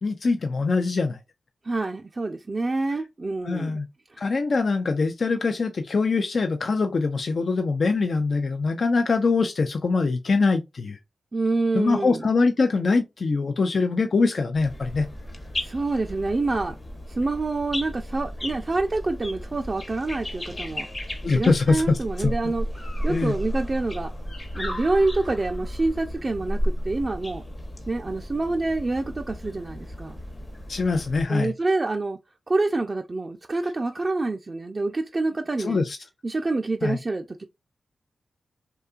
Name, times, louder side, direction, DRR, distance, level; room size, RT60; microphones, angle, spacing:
voice 1, 0.0-1.2 3.5-3.9 4.2-11.0 11.7-15.1 21.2-22.3 23.0-23.3 30.7-31.5 35.6-36.0 36.8-37.0, left 4 dB, 60° left, 0.4 m, -23 dB
voice 2, 1.6-3.8 4.1-4.3 11.3-12.3 15.6-16.7 17.1-20.9 21.3-24.1 24.5-27.4 27.9-30.2 31.3-32.2 32.5-35.8 36.2-37.4, right 2 dB, 40° right, 0.4 m, -27 dB
sound 1, 14.5-31.3, equal, 35° left, 0.8 m, -34 dB
2.7 x 2.3 x 2.3 m
cardioid pair, 45°, 0 cm